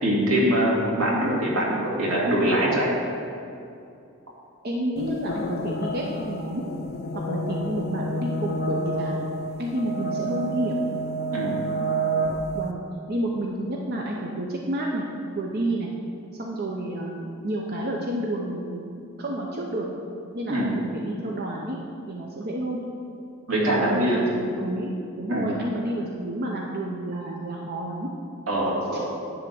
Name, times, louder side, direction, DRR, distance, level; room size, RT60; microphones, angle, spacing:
voice 1, 0.0-2.9 11.3-11.6 20.5-20.7 23.5-24.3 25.3-25.5 28.5-29.0, right 1 dB, 85° right, -4 dB, 2.2 m, -23 dB
voice 2, 4.6-6.7 7.1-9.1 9.6-10.8 12.5-12.8 13.1-15.0 15.4-15.9 16.3-19.9 20.3-21.8 22.1-22.8 23.5-28.1, right 1 dB, 50° right, -1 dB, 0.7 m, -30 dB
sound 1, 5.0-12.7, right 2 dB, 50° left, 0.5 m, -29 dB
10.5 x 3.6 x 6.8 m, 2.6 s
head